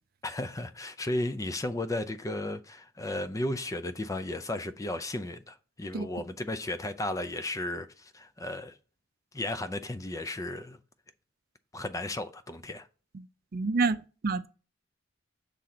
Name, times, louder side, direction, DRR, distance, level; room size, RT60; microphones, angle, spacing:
voice 1, 0.2-8.8 9.3-10.8 11.7-12.9, left 1 dB, 15° left, 0.5 m, -34 dB
voice 2, 13.5-14.5, right 4 dB, 50° right, 0.5 m, -28 dB
6.7 x 3.7 x 5.9 m
head